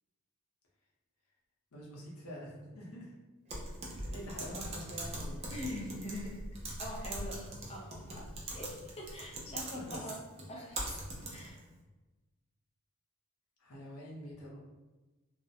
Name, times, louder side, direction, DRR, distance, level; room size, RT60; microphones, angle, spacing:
voice 1, 1.7-3.2 3.9-5.5 9.7-10.0 13.6-14.6, equal, 80° left, -3 dB, 0.7 m, -46 dB
Typing, 3.5-11.6, right 1 dB, 30° right, 0.4 m, -42 dB
voice 2, 5.3-6.4 6.8-10.2 10.5-11.0 11.3-11.6, left 1 dB, 25° left, -1 dB, 0.5 m, -44 dB
2.4 x 2.1 x 2.6 m, 1.2 s
head